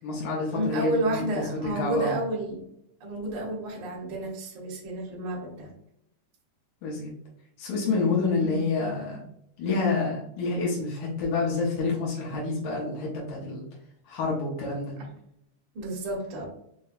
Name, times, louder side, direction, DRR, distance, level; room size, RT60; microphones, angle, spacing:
voice 1, 0.0-2.1 6.8-7.1 7.6-9.2 9.6-13.6 14.1-14.9, left 3 dB, 75° left, -4 dB, 2.3 m, -28 dB
voice 2, 0.5-2.6 3.0-5.7 8.4-8.6 15.0-15.1 15.7-16.5, right 1 dB, 60° right, -2 dB, 1.3 m, -30 dB
6.0 x 2.2 x 2.4 m, 0.73 s
omnidirectional pair, 3.5 m